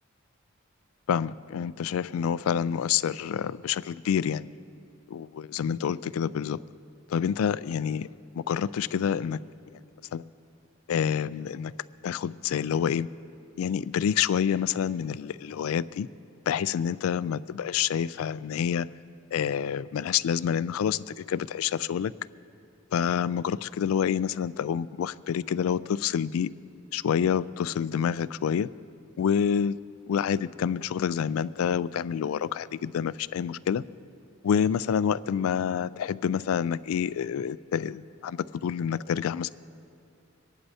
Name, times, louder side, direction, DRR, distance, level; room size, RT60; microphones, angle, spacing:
voice 1, 1.1-4.5 5.1-6.6 7.1-8.1 8.3-9.4 10.1-10.2 10.9-11.7 12.0-13.1 13.6-16.1 16.5-18.9 19.3-22.1 22.9-26.5 26.9-28.7 29.2-29.8 30.1-33.8 34.4-39.5, left 8 dB, 85° left, 18 dB, 0.3 m, -27 dB
25.5 x 11.0 x 2.8 m, 2.5 s
head